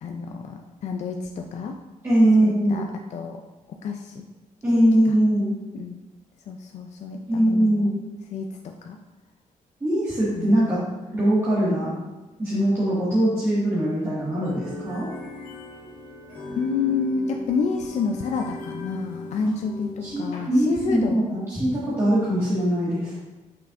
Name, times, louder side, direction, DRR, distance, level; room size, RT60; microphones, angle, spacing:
voice 1, 0.0-1.7 2.4-3.4 3.8-4.3 4.7-4.9 5.7-6.0 6.5-7.9 8.3-9.0 10.3-10.6 16.6-21.2, left 5 dB, 60° left, 3 dB, 0.4 m, -29 dB
voice 2, 2.0-2.8 4.6-5.5 7.3-8.0 9.8-10.8 11.1-11.9 12.4-15.1 20.0-23.2, right 1 dB, 20° right, -10 dB, 1.8 m, -21 dB
sound 1, 14.4-20.8, left 2 dB, 80° left, 1.6 m, -38 dB
6.6 x 5.8 x 2.5 m, 1.1 s
cardioid pair, 125°, 13 cm